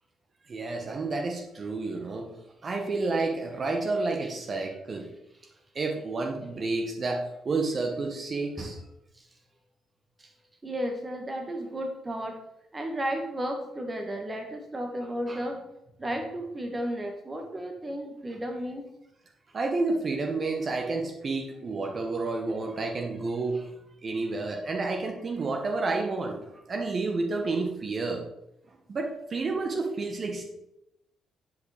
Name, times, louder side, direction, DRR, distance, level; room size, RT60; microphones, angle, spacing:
voice 1, 0.5-2.3 2.6-5.1 5.8-8.8 19.5-23.6 24.0-26.4 26.7-28.2 28.9-30.4, right 3 dB, 45° right, 2 dB, 1.8 m, -30 dB
voice 2, 10.6-12.4 12.7-15.6 16.0-18.8 23.5-23.6, equal, 25° right, 3 dB, 1.8 m, -33 dB
10.0 x 5.5 x 5.2 m, 0.84 s
hypercardioid pair, 45°, 0 cm